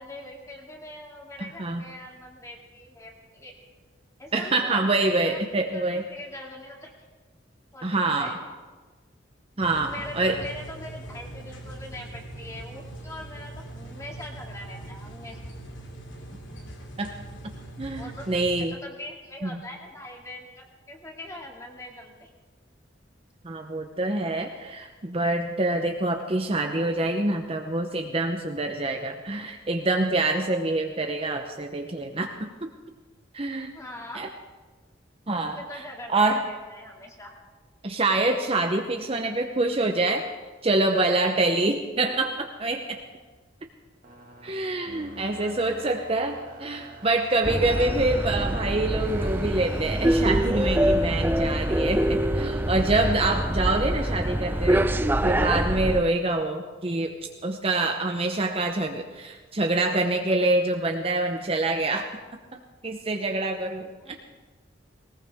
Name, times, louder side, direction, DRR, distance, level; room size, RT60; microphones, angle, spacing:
voice 1, 0.0-3.5 4.2-4.9 5.2-6.9 7.7-8.3 9.6-15.4 18.0-22.3 33.7-34.3 35.4-37.4 45.3-45.9 64.0-64.2, left 1 dB, 15° left, 0 dB, 2.4 m, -42 dB
voice 2, 1.4-1.8 4.3-6.0 7.8-8.3 9.6-10.4 17.0-17.1 17.8-18.8 19.4-19.6 23.4-32.7 33.3-33.7 34.1-34.3 35.3-35.8 36.1-36.5 37.8-40.3 40.6-43.0 44.4-54.9 55.2-57.1 57.4-62.1 62.5-64.2, right 2 dB, 30° right, 4 dB, 0.8 m, -26 dB
sound 1, 9.6-18.7, right 1 dB, 75° left, 2.5 m, -41 dB
sound 2, 44.0-52.0, right 2 dB, 45° right, 1.8 m, -46 dB
sound 3, 47.4-56.0, right 1 dB, 10° right, 0.5 m, -25 dB
19.5 x 19.0 x 3.6 m, 1.3 s
head